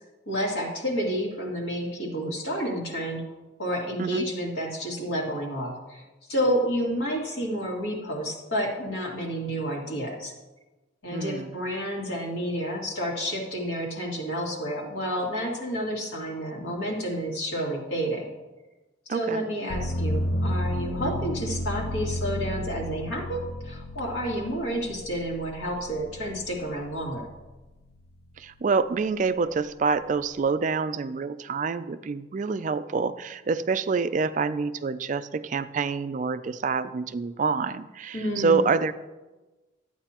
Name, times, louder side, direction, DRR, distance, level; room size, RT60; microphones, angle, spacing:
voice 1, 0.3-3.2 3.6-6.0 6.3-10.3 11.0-18.3 19.1-27.3 38.1-38.6, equal, 90° left, -1 dB, 2.3 m, -30 dB
voice 2, 11.1-11.5 19.1-19.4 21.0-21.1 28.4-38.9, right 4 dB, 40° right, 13 dB, 0.3 m, -27 dB
sound 1, 19.7-27.5 28.0-28.8, left 1 dB, 55° left, 0.7 m, -32 dB
12.0 x 8.8 x 2.9 m, 1.1 s
head